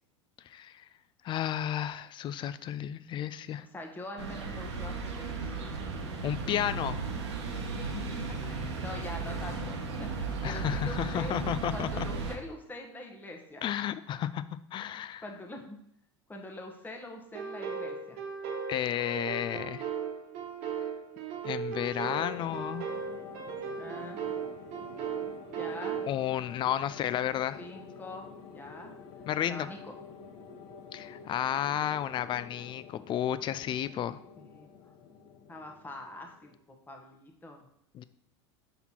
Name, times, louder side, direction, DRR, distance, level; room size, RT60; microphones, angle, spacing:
voice 1, 0.5-0.8 1.2-3.7 6.2-7.0 10.4-12.1 13.6-14.4 14.7-15.2 18.7-19.9 21.4-22.9 26.1-27.6 29.3-29.7 30.9-34.2 37.9-38.0, left 11 dB, 35° left, 15 dB, 0.4 m, -32 dB
voice 2, 3.7-5.5 7.9-13.6 15.2-15.8 16.3-18.2 23.8-24.2 25.6-26.0 27.6-28.3 28.5-28.9 29.4-29.9 34.4-34.9 35.5-36.6 36.9-37.7, left 1 dB, 10° left, 2 dB, 1.1 m, -44 dB
sound 1, 4.2-12.4, right 4 dB, 80° right, 1.0 m, -35 dB
sound 2, 17.3-26.1, right 6 dB, 55° right, 1.2 m, -37 dB
sound 3, 22.0-36.6, left 5 dB, 50° left, 0.9 m, -49 dB
5.7 x 4.1 x 4.4 m, 0.72 s
hypercardioid pair, 90°, 15 cm